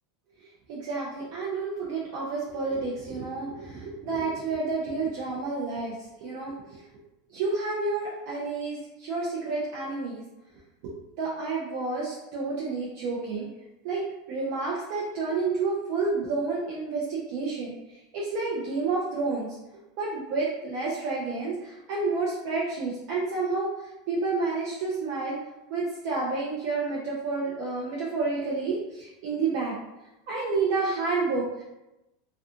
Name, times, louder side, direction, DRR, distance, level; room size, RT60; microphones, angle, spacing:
voice 1, 0.7-6.8 7.3-10.2 10.8-13.5 13.8-19.6 20.0-23.7 24.1-25.4 25.7-29.8 30.3-31.6, right 3 dB, 60° right, -5 dB, 0.6 m, -30 dB
2.4 x 2.3 x 2.6 m, 0.94 s
supercardioid pair, 130°, 0 cm